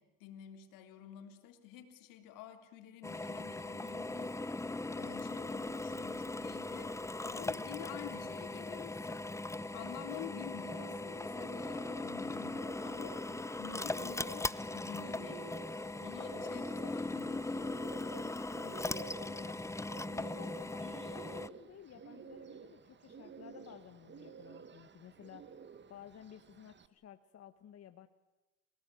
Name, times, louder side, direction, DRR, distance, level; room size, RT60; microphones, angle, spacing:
voice 1, 0.0-13.2 13.6-15.7 16.0-17.7, left 10 dB, 75° left, 6 dB, 3.4 m, -50 dB
Drill, 3.0-21.5, left 2 dB, 10° left, 0.8 m, -39 dB
Bird, 9.6-26.9, right 7 dB, 35° right, 1.7 m, -53 dB
voice 2, 18.6-19.8 20.1-25.6 25.9-28.1, left 10 dB, 50° left, 9 dB, 1.4 m, -54 dB
29.0 x 18.0 x 9.1 m, 1.1 s
supercardioid pair, 80°, 33 cm